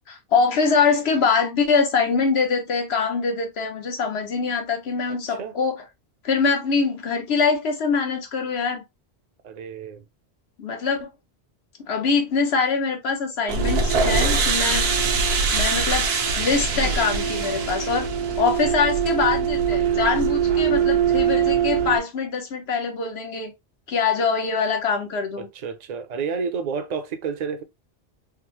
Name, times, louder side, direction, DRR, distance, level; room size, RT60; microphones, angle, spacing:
voice 1, 0.1-5.8 6.2-8.8 10.6-11.1 11.9-14.9 15.5-16.1 16.4-18.1 18.4-23.5 23.9-25.5, left 5 dB, 85° left, 1.1 m, -23 dB
voice 2, 9.4-10.0 15.0-15.2 25.4-27.6, right 6 dB, 50° right, 0.6 m, -30 dB
sound 1, 13.5-22.0, right 6 dB, 80° right, 0.9 m, -22 dB
3.5 x 2.0 x 2.9 m
omnidirectional pair, 1.1 m